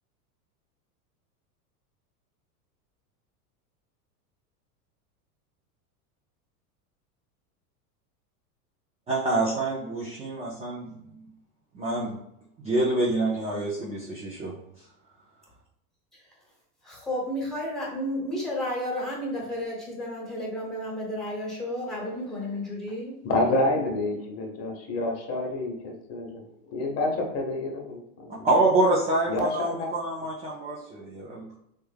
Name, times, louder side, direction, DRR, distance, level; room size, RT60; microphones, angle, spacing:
voice 1, 9.1-11.2 11.7-12.2 12.6-14.5 28.4-31.5, right 2 dB, 15° right, -6 dB, 0.4 m, -26 dB
voice 2, 16.8-23.2, left 1 dB, ahead, -4 dB, 1.0 m, -32 dB
voice 3, 23.2-26.4 26.7-28.4 29.3-29.9, left 2 dB, 35° left, 2 dB, 0.8 m, -28 dB
3.4 x 2.2 x 3.3 m, 0.81 s
hypercardioid pair, 110°, 47 cm